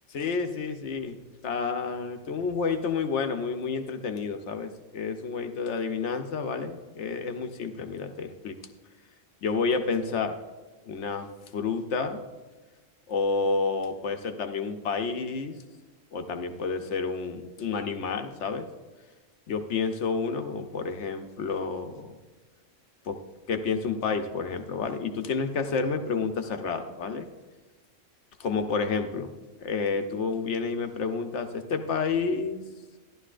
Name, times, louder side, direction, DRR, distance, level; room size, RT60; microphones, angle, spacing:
voice 1, 0.1-1.2 1.4-8.5 9.4-10.4 10.9-11.3 11.5-12.2 13.1-15.6 16.1-18.7 19.5-22.1 23.0-23.2 23.5-27.3 28.4-29.3 29.6-32.6, left 5 dB, 70° left, 6 dB, 1.0 m, -30 dB
13.5 x 11.0 x 2.5 m, 1.2 s
omnidirectional pair, 1.3 m